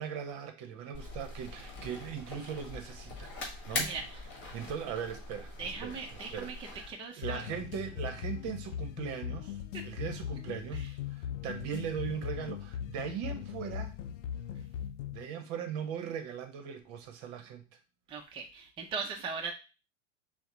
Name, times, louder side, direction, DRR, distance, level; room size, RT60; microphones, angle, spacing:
voice 1, 0.0-3.3 3.7-3.9 4.5-9.6 9.8-13.9 15.1-17.7, right 8 dB, 45° right, 0.9 m, -39 dB
sound 1, 0.9-6.9, left 2 dB, 30° left, 1.6 m, -42 dB
voice 2, 5.6-6.5 6.9-7.4 9.7-9.8 18.1-19.5, right 5 dB, 15° right, 0.6 m, -39 dB
sound 2, 7.2-15.3, left 9 dB, 70° left, 0.5 m, -39 dB
6.3 x 2.2 x 3.0 m
hypercardioid pair, 110°, 37 cm